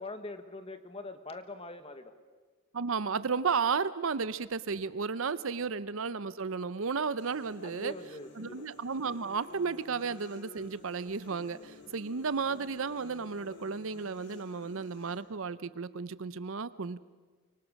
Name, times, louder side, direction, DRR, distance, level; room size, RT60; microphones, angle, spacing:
voice 1, 0.0-2.2 5.6-5.7 7.6-8.7 11.8-12.0, left 2 dB, 25° left, 9 dB, 1.4 m, -43 dB
voice 2, 2.7-7.9 8.4-17.0, right 5 dB, 65° right, 16 dB, 0.6 m, -33 dB
sound 1, 7.2-15.2, left 2 dB, 90° left, 4.2 m, -52 dB
24.5 x 24.0 x 6.4 m, 1.4 s
head